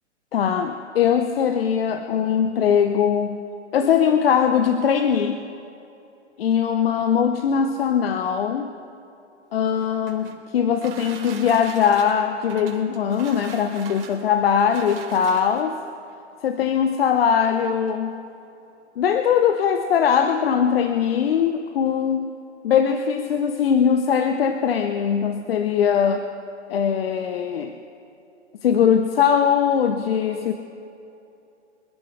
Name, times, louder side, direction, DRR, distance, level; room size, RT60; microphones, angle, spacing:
voice 1, 0.3-3.4 3.7-5.4 6.4-8.7 9.5-15.8 16.4-18.2 19.0-22.4 22.6-26.3 26.7-27.7 28.6-30.5, left 7 dB, 55° left, 7 dB, 0.9 m, -21 dB
sound 1, 9.6-15.8 16.7-16.8 17.2-17.3 17.6-18.0, right 7 dB, 50° right, 3.5 m, -41 dB
25.5 x 11.5 x 3.3 m, 2.7 s
figure-of-eight pair, 125°, 36 cm